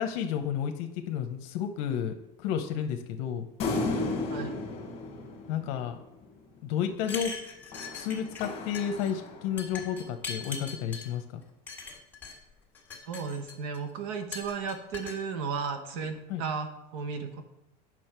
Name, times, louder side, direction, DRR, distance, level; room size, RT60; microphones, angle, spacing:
voice 1, 0.0-2.1 2.4-3.5 5.5-6.0 6.6-7.3 7.9-11.4 16.3-16.4, left 8 dB, 60° left, 6 dB, 0.8 m, -31 dB
sound 1, 3.6-6.3 7.7-9.8, left 3 dB, 30° left, 1.8 m, -34 dB
sound 2, 7.0-8.5 8.7-9.1 9.6-11.1 11.7-12.3 12.8-13.8 14.3-15.2, left 4 dB, 10° left, 1.7 m, -40 dB
voice 2, 13.1-17.4, right 5 dB, 65° right, 6 dB, 1.3 m, -34 dB
8.5 x 6.2 x 4.5 m, 0.88 s
cardioid pair, 160°, 20 cm